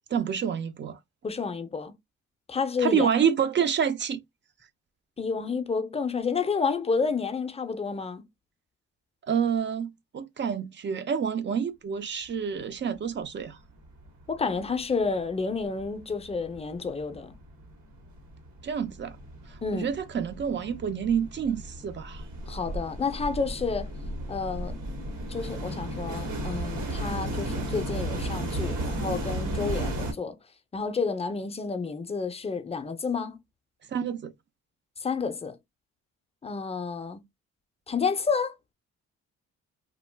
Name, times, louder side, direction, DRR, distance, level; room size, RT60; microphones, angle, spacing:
voice 1, 0.1-1.0 2.8-4.2 9.3-13.6 18.6-19.2 19.7-22.2 33.9-34.3, right 7 dB, 40° right, 0.4 m, -28 dB
voice 2, 1.2-2.0 2.5-3.1 5.2-8.3 14.3-17.4 19.6-19.9 22.5-23.9 24.3-24.8 25.3-30.4 30.7-33.4 35.0-35.6 36.4-37.2 37.9-38.5, left 5 dB, 20° left, 0.5 m, -30 dB
sound 1, 13.5-13.6 13.8-14.8 15.1-30.1, right 1 dB, 85° right, 1.1 m, -34 dB
2.4 x 2.2 x 3.3 m
cardioid pair, 90°, 30 cm